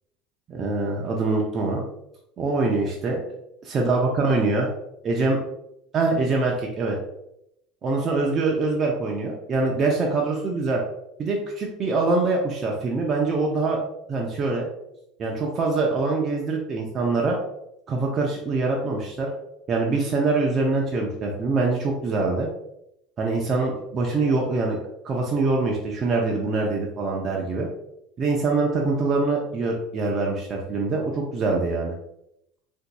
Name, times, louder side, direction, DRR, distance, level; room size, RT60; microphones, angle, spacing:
voice 1, 0.5-1.8 2.4-3.4 3.7-4.7 5.0-5.4 5.9-7.0 7.8-10.8 11.2-13.8 14.1-14.7 15.2-17.4 17.9-19.3 19.7-22.5 23.2-24.8 25.0-27.7 28.2-31.9, right 3 dB, 40° right, -1 dB, 0.5 m, -24 dB
3.8 x 2.6 x 2.2 m, 0.82 s
supercardioid pair, 95°, 0 cm